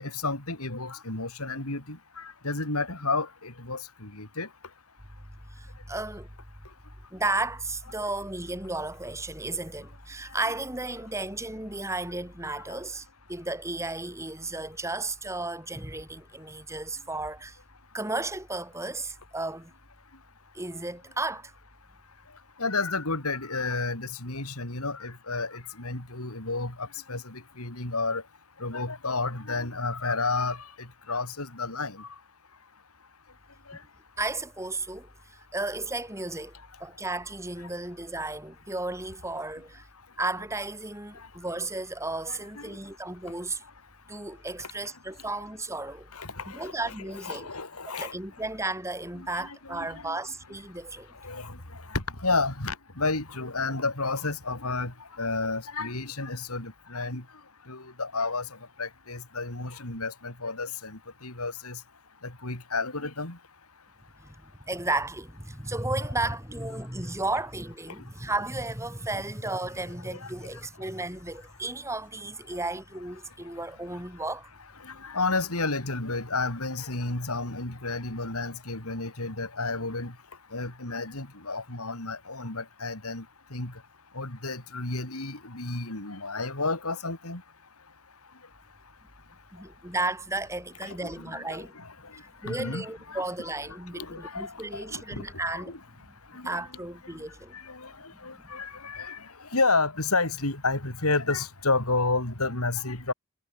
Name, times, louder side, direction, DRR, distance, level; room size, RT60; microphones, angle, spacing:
voice 1, 0.0-4.5 22.6-28.2 28.6-32.1 33.7-33.8 42.3-42.7 46.1-46.7 47.2-48.1 49.2-50.2 51.2-51.6 51.9-57.2 57.7-58.5 58.8-61.8 62.2-63.4 70.1-70.3 74.8-80.1 80.5-83.2 83.5-83.7 84.1-87.4 90.8-91.9 92.4-93.5 93.9-95.8 96.3-96.6 97.5-103.1, left 3 dB, 90° left, 4.7 m, -31 dB
voice 2, 5.5-6.3 7.1-17.6 17.9-19.7 20.5-21.5 34.2-36.5 36.8-39.9 40.2-43.6 44.1-46.1 46.5-47.5 48.0-51.1 64.2-74.5 89.5-91.8 92.2-96.1 96.4-97.5 98.2-98.3, right 2 dB, 15° right, 4.7 m, -34 dB
head